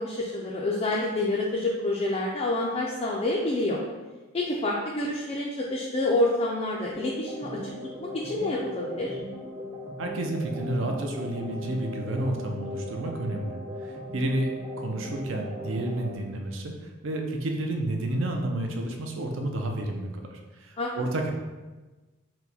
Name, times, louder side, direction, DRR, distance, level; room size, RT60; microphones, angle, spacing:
voice 1, 0.0-3.8 4.3-7.6 8.0-9.2 20.8-20.9, left 2 dB, 30° left, -4 dB, 0.4 m, -28 dB
sound 1, 6.9-16.2, left 1 dB, 15° right, 0.6 m, -38 dB
voice 2, 10.0-13.6 13.8-16.7 17.0-20.3 20.6-21.3, right 1 dB, 60° right, 2 dB, 0.5 m, -30 dB
4.5 x 2.2 x 4.0 m, 1.2 s
head